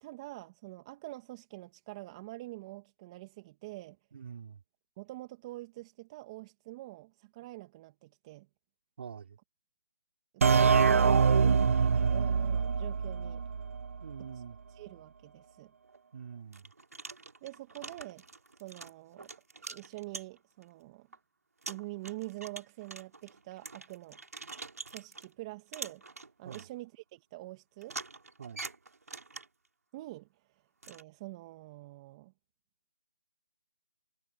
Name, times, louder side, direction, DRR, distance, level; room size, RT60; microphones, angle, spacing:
voice 1, 0.0-4.0 5.0-8.5 10.3-13.4 14.7-15.7 17.4-18.2 18.6-19.3 19.7-21.1 21.7-24.2 24.9-26.0 26.4-28.0 29.9-30.3 30.9-32.3, right 19 dB, 20° right, 1.8 m, -45 dB
voice 2, 4.1-4.6 9.0-9.4 14.0-14.6 16.1-16.7 26.4-26.7 28.4-28.6, right 7 dB, 45° right, 5.0 m, -45 dB
sound 1, 10.4-14.0, right 5 dB, 60° right, 0.4 m, -25 dB
sound 2, 15.8-16.0 16.5-20.6 21.1-21.2 21.6-25.3 25.7-26.7 27.8-29.7 30.8-31.0, right 3 dB, 80° right, 4.0 m, -45 dB
hypercardioid pair, 160°, 8 cm